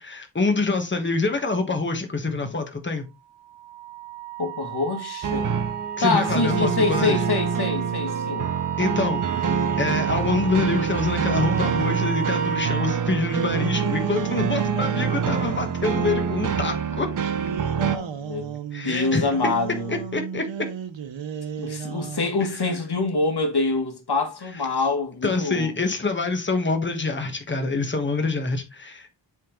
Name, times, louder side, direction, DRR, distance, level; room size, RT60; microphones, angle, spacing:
voice 1, 0.0-3.0 6.0-7.2 8.8-9.5 9.8-17.1 18.7-19.3 19.9-20.4 25.2-29.1, left 3 dB, 25° left, 1.3 m, -26 dB
Wind instrument woodwind instrument, 3.5-13.0, right 9 dB, 5° right, 0.9 m, -33 dB
voice 2, 4.4-5.5 6.0-8.5 15.3-15.5 17.8-20.0 21.6-25.7, left 3 dB, 55° left, 1.7 m, -26 dB
sound 1, 5.2-18.0, right 6 dB, 45° right, 0.6 m, -26 dB
sound 2, 9.0-12.2 13.1-16.1 17.2-22.4, right 7 dB, 70° right, 0.9 m, -33 dB
7.5 x 3.8 x 3.7 m
wide cardioid pair, 105°, 46 cm